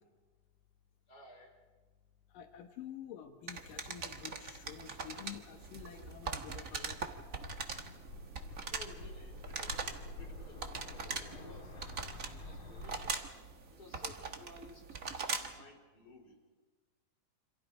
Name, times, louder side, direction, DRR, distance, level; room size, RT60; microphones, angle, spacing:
voice 1, 1.1-1.5 3.6-3.7 7.5-7.8 8.7-11.7 12.1-13.3 13.7-16.3, left 2 dB, 30° left, 1 dB, 5.2 m, -56 dB
voice 2, 2.3-7.0, left 10 dB, 80° left, 4 dB, 3.0 m, -49 dB
sound 1, 3.5-15.6, right 4 dB, 80° right, 0.7 m, -42 dB
sound 2, 5.1-13.1, left 1 dB, 50° left, 3.9 m, -49 dB
28.5 x 26.5 x 5.1 m, 1.3 s
omnidirectional pair, 3.8 m